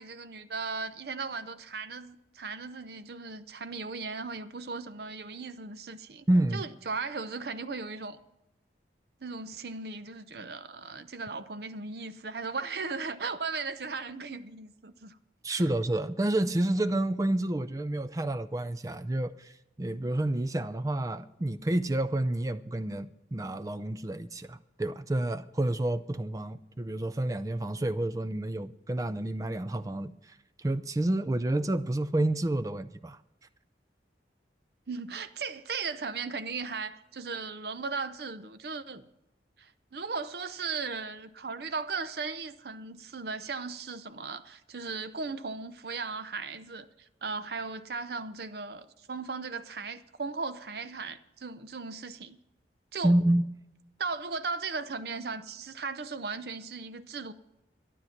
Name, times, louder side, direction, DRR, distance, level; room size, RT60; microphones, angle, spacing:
voice 1, 0.0-6.3 6.5-8.2 9.2-15.2 15.5-15.6 34.9-39.0 39.6-52.4 52.9-53.2 54.0-57.3, right 4 dB, 60° right, 0.7 m, -37 dB
voice 2, 6.3-6.6 15.4-19.5 19.8-33.2 53.0-53.4, right 1 dB, 20° right, 0.4 m, -29 dB
12.5 x 12.0 x 5.8 m
head